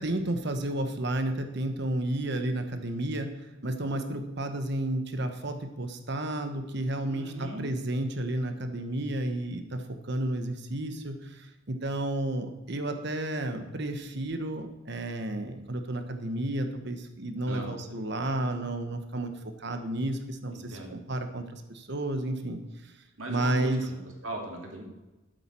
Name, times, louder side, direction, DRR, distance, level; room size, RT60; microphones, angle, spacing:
voice 1, 0.0-19.3 19.6-22.9 23.3-23.8, right 1 dB, 50° right, 7 dB, 1.1 m, -32 dB
voice 2, 7.1-7.6 17.5-17.7 20.5-20.9 23.2-23.9 24.2-24.8, right 1 dB, 65° right, 0 dB, 2.7 m, -38 dB
12.5 x 8.0 x 4.5 m, 1.1 s
head